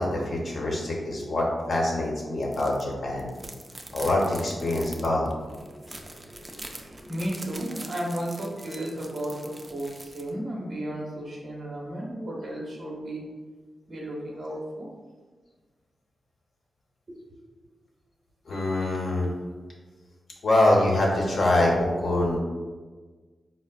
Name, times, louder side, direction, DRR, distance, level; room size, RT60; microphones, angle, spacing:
voice 1, 0.0-3.3 3.9-5.3 8.7-8.8 18.5-19.3 20.4-22.4, left 1 dB, 65° left, -2 dB, 0.8 m, -24 dB
sound 1, 2.4-2.8 3.2-10.3, right 1 dB, 25° right, 0.3 m, -43 dB
voice 2, 5.6-13.2 13.9-14.9 17.1-17.4, right 1 dB, 60° right, -3 dB, 0.8 m, -34 dB
4.3 x 2.0 x 2.2 m, 1.3 s
cardioid pair, 75°, 0 cm